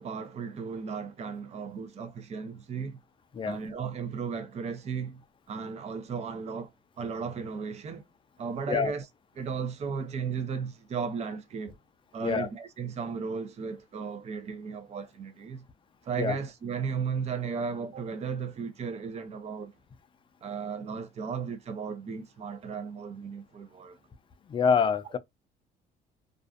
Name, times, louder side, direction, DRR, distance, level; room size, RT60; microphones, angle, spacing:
voice 1, 0.0-3.0 3.4-5.2 5.5-6.7 7.0-8.0 8.4-9.1 9.4-11.8 12.1-15.6 16.0-19.7 20.4-24.0, right 6 dB, 40° right, 0.6 m, -35 dB
voice 2, 24.5-25.2, left 6 dB, 30° left, 0.4 m, -26 dB
2.5 x 2.3 x 2.4 m
cardioid pair, 110°, 17 cm